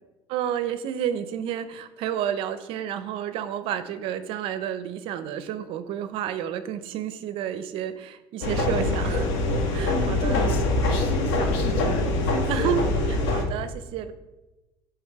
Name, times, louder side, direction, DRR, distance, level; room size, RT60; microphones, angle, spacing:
voice 1, 0.3-9.3 9.7-10.4 12.5-14.1, right 9 dB, 55° right, 11 dB, 0.5 m, -30 dB
sound 1, 8.4-13.4, left 2 dB, 85° left, 1.2 m, -24 dB
voice 2, 9.9-10.6 10.9-12.7 13.1-13.2, left 3 dB, 60° left, 3 dB, 1.2 m, -33 dB
7.2 x 3.4 x 4.5 m, 1.1 s
cardioid pair, 165°, 11 cm